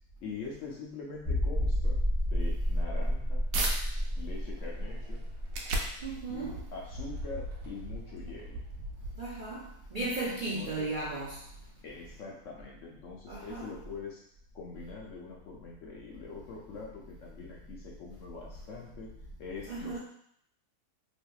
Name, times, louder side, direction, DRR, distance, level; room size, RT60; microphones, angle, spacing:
voice 1, 0.2-3.4 4.2-5.3 6.3-8.6 10.5-10.9 11.8-14.2 14.5-19.1 19.4-20.0, left 4 dB, 65° left, -2 dB, 0.8 m, -44 dB
sound 1, 1.3-6.7 7.0-7.1 7.6-7.7, equal, 20° left, 0.7 m, -31 dB
sound 2, 2.8-3.7 4.3-9.5, right 1 dB, 90° right, 1.2 m, -38 dB
voice 2, 6.0-6.6 9.2-11.4 13.3-13.7 19.7-20.0, right 2 dB, 55° right, -8 dB, 0.5 m, -35 dB
3.3 x 2.8 x 2.3 m, 0.68 s
omnidirectional pair, 1.7 m